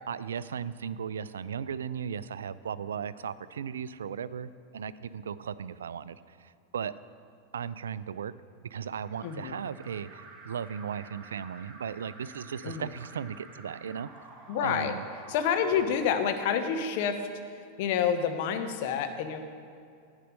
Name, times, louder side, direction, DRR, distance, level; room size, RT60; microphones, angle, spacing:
voice 1, 0.1-6.9 7.5-8.3 8.6-14.1 14.6-15.0, right 7 dB, 65° right, 16 dB, 0.3 m, -36 dB
Alarm, 8.9-16.8, right 3 dB, 25° right, 1.7 m, -51 dB
voice 2, 9.2-9.5 12.6-12.9 14.5-15.0 15.3-17.3 17.8-19.4, left 7 dB, 50° left, 7 dB, 0.9 m, -28 dB
11.0 x 9.0 x 5.2 m, 2.4 s
figure-of-eight pair, 90°, 0 cm